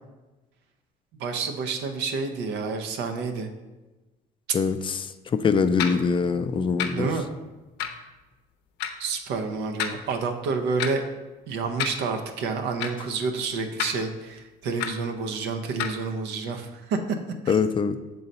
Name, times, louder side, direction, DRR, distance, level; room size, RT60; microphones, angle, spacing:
voice 1, 1.2-3.5 6.9-7.3 9.0-11.0 11.5-17.2 17.4-17.6, right 4 dB, 85° right, 5 dB, 0.7 m, -29 dB
voice 2, 4.5-7.1 17.5-18.0, left 5 dB, 30° left, 10 dB, 0.4 m, -23 dB
sound 1, 5.8-6.0 6.8-6.9 7.8-8.0 8.8-8.9 9.8-10.0 10.8-10.9 11.8-12.0 12.8-12.9 13.8-13.9 14.8-14.9 15.8-16.0, left 9 dB, 85° left, 0.6 m, -28 dB
6.6 x 3.9 x 4.1 m, 1.1 s
cardioid pair, 110°, 17 cm